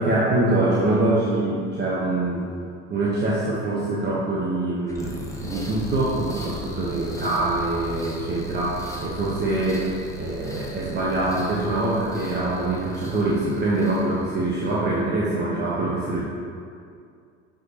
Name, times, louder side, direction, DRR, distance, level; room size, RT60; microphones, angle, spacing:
voice 1, 0.0-2.5 2.9-9.9 10.1-16.2, right 2 dB, 30° right, -6 dB, 1.1 m, -24 dB
sound 1, 4.9-14.9, right 1 dB, 10° left, 1.0 m, -37 dB
7.7 x 5.0 x 2.9 m, 2.3 s
figure-of-eight pair, 65°, 36 cm